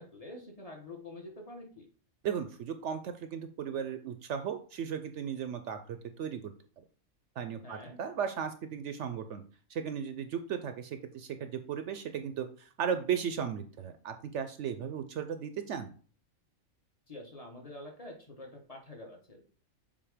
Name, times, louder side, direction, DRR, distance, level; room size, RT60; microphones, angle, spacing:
voice 1, 0.0-1.9 7.6-8.0 17.1-19.4, left 1 dB, 30° left, 1 dB, 1.2 m, -47 dB
voice 2, 2.2-6.5 7.4-9.4 9.7-15.9, right 7 dB, 70° right, 9 dB, 0.8 m, -36 dB
7.3 x 2.6 x 4.9 m, 0.41 s
omnidirectional pair, 1.4 m